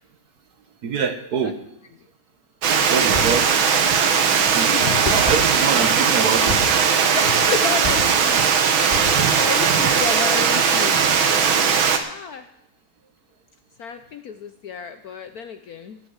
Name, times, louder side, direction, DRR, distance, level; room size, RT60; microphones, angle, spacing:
voice 1, 0.8-1.5 2.9-3.5 4.3-6.4, right 6 dB, 55° right, 8 dB, 1.4 m, -25 dB
Water, 2.6-12.0, right 6 dB, 75° right, 2.0 m, -18 dB
sound 1, 3.1-3.4 5.0-5.5 6.4-7.0 7.8-8.3 8.9-9.5, left 1 dB, 30° right, 4.6 m, -30 dB
voice 2, 4.7-5.2 7.1-8.4 8.8-11.0 12.0-12.5 13.8-16.0, left 7 dB, 65° left, 9 dB, 1.0 m, -31 dB
16.0 x 6.7 x 7.9 m, 0.77 s
omnidirectional pair, 2.2 m